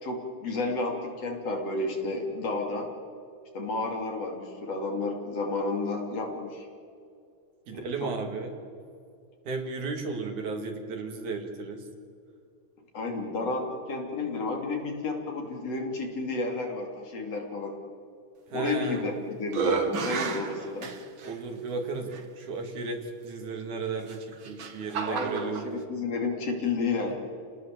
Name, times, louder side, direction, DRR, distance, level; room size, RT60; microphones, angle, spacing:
voice 1, 0.0-2.9 3.5-6.7 7.7-8.1 12.9-17.8 18.5-20.9 25.0-27.1, left 3 dB, 55° left, 2 dB, 3.8 m, -31 dB
voice 2, 7.7-8.5 9.5-11.8 18.5-19.0 21.2-25.6, right 4 dB, 75° right, 3 dB, 3.8 m, -34 dB
sound 1, 18.7-19.1 19.5-21.3 22.1-22.2 24.0-25.7, right 5 dB, 50° right, 1.8 m, -31 dB
29.5 x 19.0 x 7.6 m, 2.3 s
omnidirectional pair, 3.5 m